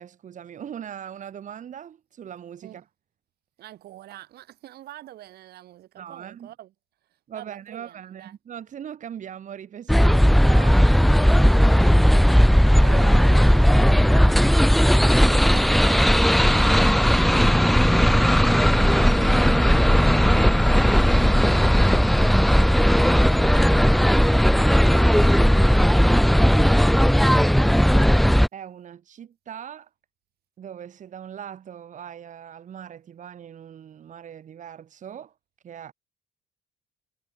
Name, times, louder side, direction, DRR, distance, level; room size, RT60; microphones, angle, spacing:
voice 1, 0.0-2.9 6.0-6.5 7.3-11.9 12.7-14.3 15.9-16.1 16.5-17.1 18.1-20.6 28.5-29.9 30.6-35.3 35.6-35.9, right 9 dB, 50° right, 3.2 m, -40 dB
voice 2, 3.6-6.7 7.3-8.3 10.6-10.9 15.1-16.3 22.0-24.7 26.2-26.8, right 14 dB, 70° right, 3.6 m, -46 dB
sound 1, 9.9-28.5, equal, ahead, 0.3 m, -17 dB
cardioid pair, 110°, 17 cm